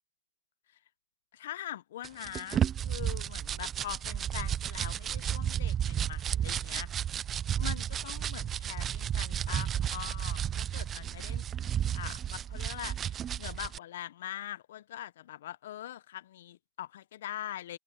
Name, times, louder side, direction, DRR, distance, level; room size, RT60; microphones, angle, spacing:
voice 1, 1.3-6.9 7.5-11.4 11.9-17.8, left 12 dB, 60° left, 0.9 m, -43 dB
sound 1, 2.0-13.8, right 9 dB, 20° right, 0.5 m, -32 dB
hypercardioid pair, 135°, 0 cm